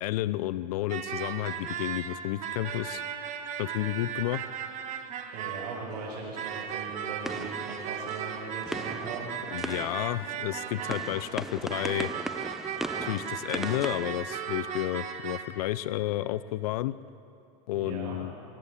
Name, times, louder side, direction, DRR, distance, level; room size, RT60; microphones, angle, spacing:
voice 1, 0.0-3.0 3.6-4.4 9.5-12.1 13.0-17.0 17.7-18.3, left 15 dB, 75° left, 16 dB, 0.6 m, -31 dB
sound 1, 0.9-6.0 6.4-11.4 11.7-15.4, right 8 dB, 40° right, 1.6 m, -36 dB
voice 2, 5.3-9.3 17.7-18.2, right 4 dB, 80° right, -6 dB, 6.0 m, -39 dB
sound 2, 5.9-15.0, right 1 dB, ahead, 0.7 m, -40 dB
24.5 x 13.5 x 8.4 m, 2.7 s
supercardioid pair, 125°, 20 cm